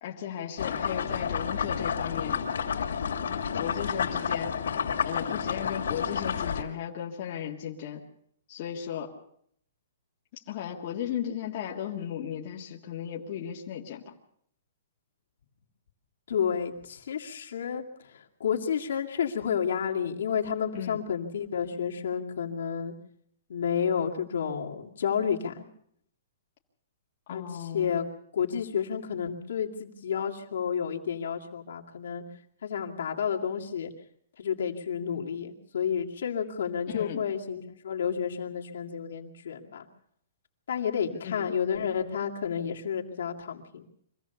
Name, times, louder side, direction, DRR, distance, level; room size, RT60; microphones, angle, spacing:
voice 1, 0.0-2.4 3.6-4.6 5.0-8.0 8.5-9.1 10.3-14.1 20.7-21.1 27.3-28.0 36.9-37.2 41.2-41.6, left 9 dB, 35° left, -1 dB, 1.8 m, -36 dB
sound 1, 0.6-6.6, left 7 dB, 85° left, 2.6 m, -30 dB
voice 2, 16.3-17.8 18.4-22.9 23.5-25.6 27.3-28.1 28.3-32.2 32.6-33.9 34.4-39.9 40.7-43.9, left 7 dB, 70° left, 1 dB, 2.3 m, -30 dB
24.5 x 16.0 x 7.1 m, 0.69 s
hypercardioid pair, 175°, 0 cm